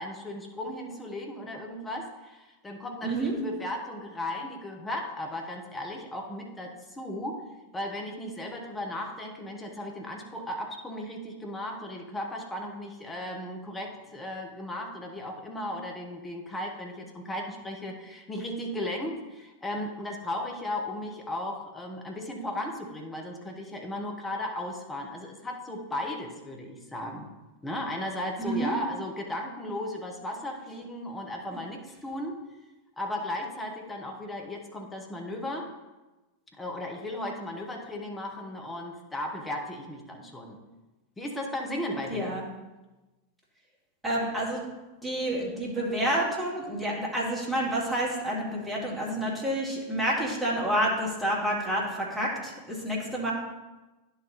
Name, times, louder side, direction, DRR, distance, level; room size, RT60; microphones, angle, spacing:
voice 1, 0.0-7.4 7.7-27.3 27.6-32.4 33.0-35.7 36.6-40.6 41.2-42.4, left 1 dB, 10° left, 1 dB, 1.0 m, -36 dB
voice 2, 3.0-3.4 28.4-28.7 42.1-42.4 44.0-44.6 45.0-53.3, right 1 dB, 5° right, -5 dB, 2.1 m, -29 dB
10.5 x 4.1 x 4.0 m, 1.1 s
figure-of-eight pair, 90°, 0 cm